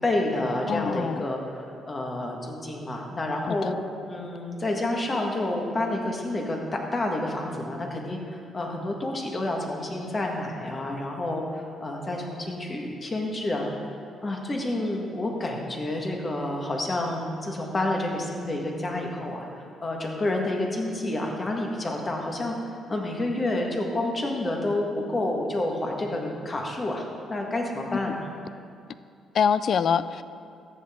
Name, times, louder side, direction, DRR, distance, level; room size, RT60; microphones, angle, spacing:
voice 1, 0.0-3.8 4.1-13.9 14.2-19.5 19.8-28.2, left 1 dB, 30° left, 1 dB, 1.6 m, -29 dB
voice 2, 0.7-1.3 3.4-3.7 27.9-28.2 29.3-30.2, left 7 dB, 60° left, 14 dB, 0.3 m, -25 dB
13.5 x 7.8 x 3.7 m, 2.4 s
cardioid pair, 90°, 0 cm